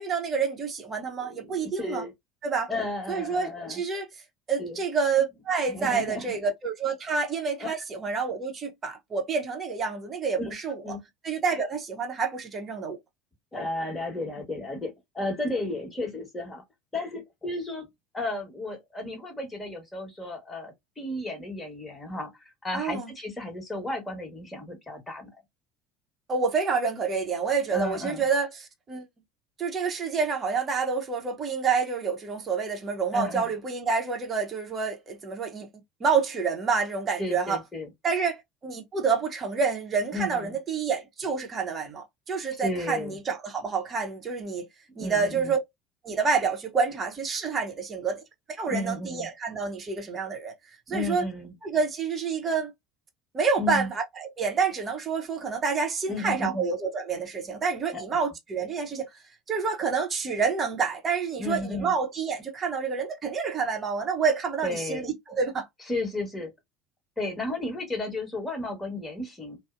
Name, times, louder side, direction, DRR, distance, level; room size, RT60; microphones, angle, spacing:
voice 1, 0.0-2.0 2.4-2.7 3.1-4.1 4.5-10.8 11.2-13.0 22.7-23.1 26.3-29.0 29.6-35.7 36.0-37.6 38.0-44.7 45.0-45.6 46.0-48.2 48.6-50.5 50.9-51.2 51.6-52.7 53.3-59.1 59.5-65.7, right 5 dB, 30° right, 0.8 m, -28 dB
voice 2, 1.2-2.1 2.7-3.8 4.6-4.8 5.7-6.3 7.6-7.7 10.4-10.5 10.8-11.0 13.5-16.6 16.9-17.9 18.1-25.3 27.7-28.3 33.1-33.5 37.2-37.9 40.1-40.6 42.6-43.2 45.0-45.5 48.7-49.3 50.9-51.5 53.6-53.9 56.1-56.7 57.9-58.0 61.4-61.9 64.6-65.1 65.9-66.5 67.2-69.6, left 2 dB, 15° left, 1.2 m, -33 dB
2.5 x 2.0 x 2.4 m
figure-of-eight pair, 65°, 0 cm